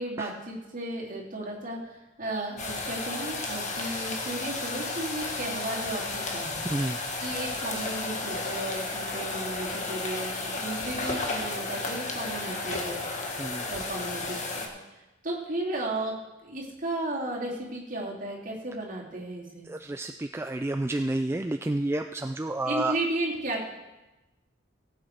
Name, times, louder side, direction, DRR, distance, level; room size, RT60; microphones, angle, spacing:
voice 1, 0.0-6.6 7.2-13.0 13.3-16.1 16.4-19.7 22.6-23.6, right 1 dB, 45° right, -4 dB, 3.0 m, -34 dB
sound 1, 2.6-14.7, left 3 dB, 40° left, 1.6 m, -33 dB
voice 2, 19.7-23.0, right 2 dB, 15° right, 6 dB, 0.3 m, -30 dB
17.5 x 7.6 x 4.7 m, 1.0 s
head